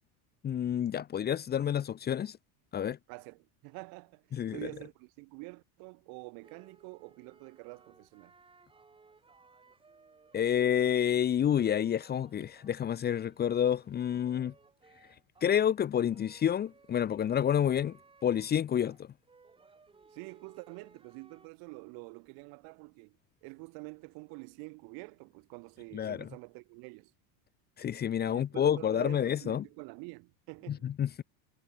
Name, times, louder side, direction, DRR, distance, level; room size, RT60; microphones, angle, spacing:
voice 1, 0.4-2.4 2.7-3.0 4.3-4.6 10.3-14.5 15.4-18.0 18.2-19.1 25.9-26.3 27.8-29.6 30.7-31.2, left 9 dB, 20° left, 1.4 m, -29 dB
voice 2, 3.1-8.3 20.1-23.2 23.4-27.1 28.3-30.9, right 32 dB, 55° right, 4.3 m, -47 dB
sound 1, 6.4-15.6 16.0-21.5, right 4 dB, 10° right, 6.8 m, -61 dB
cardioid pair, 160°, 42 cm